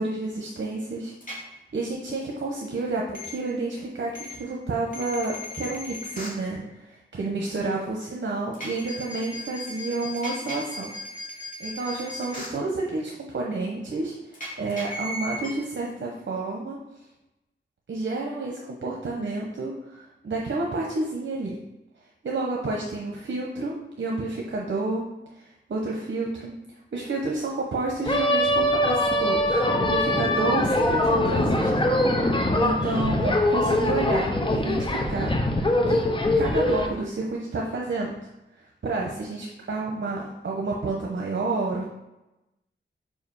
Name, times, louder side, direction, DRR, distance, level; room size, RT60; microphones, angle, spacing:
voice 1, 0.0-10.9 11.6-16.8 17.9-21.6 22.2-25.0 25.3-26.5 26.9-31.7 32.1-36.0 36.4-38.1 38.8-41.9, right 3 dB, 65° right, -1 dB, 0.9 m, -30 dB
sound 1, 1.2-1.3 3.1-3.3 4.1-4.3 4.9-6.3 8.5-12.5 14.3-15.5, left 1 dB, 40° left, 2.3 m, -36 dB
sound 2, 28.1-36.9, left 1 dB, 25° left, 0.8 m, -23 dB
5.0 x 4.8 x 5.6 m, 0.96 s
wide cardioid pair, 90°, 20 cm